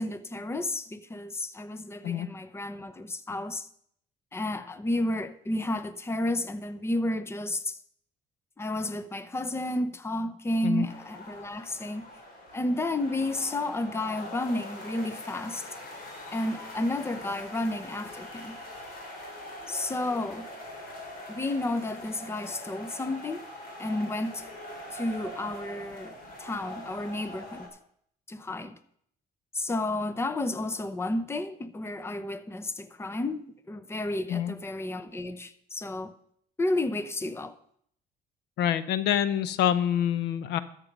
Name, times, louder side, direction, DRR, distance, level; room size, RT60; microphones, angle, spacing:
voice 1, 0.0-3.7 4.3-7.8 8.6-12.0 12.5-15.7 16.3-18.6 19.7-20.5 21.3-23.4 23.8-24.4 24.9-27.7 28.3-28.8 29.5-36.1 36.6-37.5, left 1 dB, 15° left, 0.8 m, -31 dB
sound 1, 10.9-27.7, left 1 dB, 60° left, 3.6 m, -43 dB
voice 2, 38.6-40.6, left 10 dB, 80° left, 0.7 m, -26 dB
13.0 x 7.4 x 5.3 m
cardioid pair, 110°, 17 cm